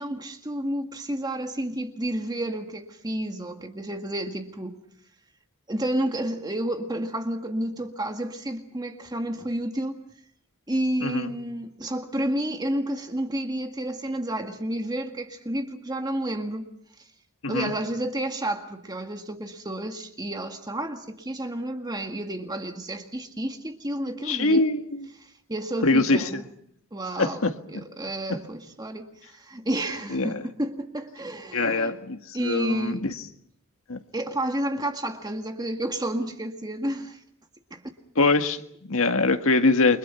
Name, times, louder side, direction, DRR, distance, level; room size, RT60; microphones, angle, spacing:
voice 1, 0.0-4.8 5.7-10.0 10.7-16.7 17.0-17.1 17.5-24.7 25.2-26.5 26.9-27.4 27.7-31.9 32.3-33.1 34.1-37.2 37.7-37.8, right 1 dB, 20° right, 1.8 m, -30 dB
voice 2, 17.4-17.7 24.2-25.1 25.8-26.3 27.2-27.8 30.1-30.4 31.5-33.1 33.9-34.0 38.2-40.0, left 3 dB, 70° left, 1.9 m, -23 dB
30.0 x 24.5 x 5.8 m
head